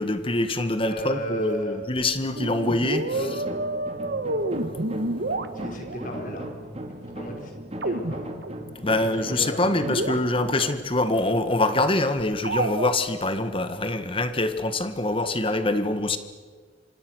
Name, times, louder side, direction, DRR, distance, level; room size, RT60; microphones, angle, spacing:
voice 1, 0.0-3.3 8.8-16.2, left 2 dB, 30° left, 9 dB, 1.6 m, -25 dB
voice 2, 0.7-1.8 3.1-3.4 5.5-6.5 7.0-8.3 9.0-10.2 10.5-10.7, equal, 45° left, 2 dB, 5.0 m, -36 dB
sound 1, 2.3-6.0 7.8-8.7 9.1-9.2 9.5-9.6 9.8-10.7 12.4-12.9, right 2 dB, 60° right, 1.4 m, -29 dB
sound 2, 3.1-11.8, right 1 dB, 35° right, 2.3 m, -38 dB
27.5 x 25.5 x 6.3 m, 1.5 s
head